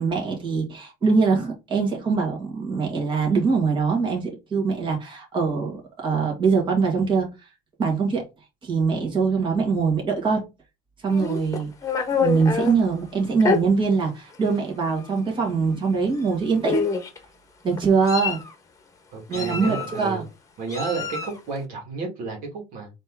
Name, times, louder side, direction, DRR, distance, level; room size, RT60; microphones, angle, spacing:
voice 1, 0.0-7.3 7.8-8.3 8.6-10.4 11.0-11.7 12.2-16.8 17.6-18.4 19.3-20.2, right 5 dB, 30° right, 2.2 m, -23 dB
Meow, 11.1-12.7 13.4-13.6 14.4-14.6 14.9-15.1 16.2-16.3 16.6-17.2 17.8-18.5 19.3-20.1 20.7-21.4, left 5 dB, 20° left, 1.2 m, -26 dB
voice 2, 19.1-20.2 20.6-22.9, right 4 dB, 60° right, 2.1 m, -32 dB
4.2 x 3.2 x 3.7 m
supercardioid pair, 105°, 16 cm